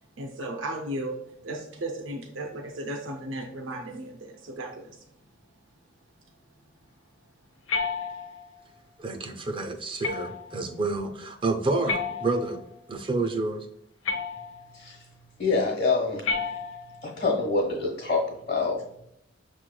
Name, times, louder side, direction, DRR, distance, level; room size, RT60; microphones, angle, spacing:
voice 1, 0.2-1.2 1.4-5.0, right 1 dB, 85° right, 2 dB, 0.5 m, -35 dB
sound 1, 7.7-8.6 10.0-10.6 11.9-12.7 14.0-14.8 16.2-17.1, left 5 dB, 90° left, 0.5 m, -31 dB
voice 2, 9.0-12.6 12.9-13.7, right 3 dB, 25° right, 5 dB, 0.4 m, -29 dB
voice 3, 14.7-15.1 15.4-16.3 17.0-19.0, left 3 dB, 50° left, -3 dB, 1.1 m, -26 dB
6.6 x 3.1 x 2.2 m, 0.77 s
head